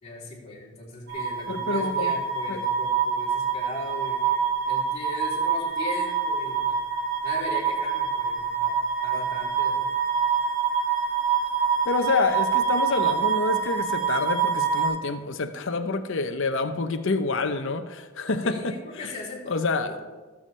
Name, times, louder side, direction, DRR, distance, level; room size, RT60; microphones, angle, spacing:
voice 1, 0.0-6.8 7.2-10.0 18.4-20.0, left 2 dB, 30° left, 3.3 m, -38 dB
sound 1, 1.1-14.9, right 7 dB, 55° right, 2.8 m, -26 dB
voice 2, 1.5-2.1 2.5-2.6 11.8-18.8 19.0-19.1 19.5-20.0, left 3 dB, 65° left, 0.8 m, -27 dB
18.0 x 7.1 x 3.3 m
head